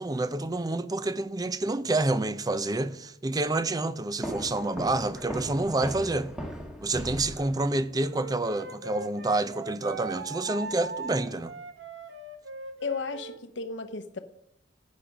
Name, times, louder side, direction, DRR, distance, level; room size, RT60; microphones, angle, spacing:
voice 1, 0.0-6.3 6.8-11.5, right 2 dB, 20° right, 0.5 m, -28 dB
sound 1, 4.2-7.9, equal, 5° right, 1.5 m, -38 dB
Wind instrument woodwind instrument, 8.1-13.4, right 4 dB, 75° right, 1.1 m, -40 dB
voice 2, 12.8-14.2, left 4 dB, 75° left, 0.8 m, -34 dB
11.5 x 8.7 x 5.2 m
head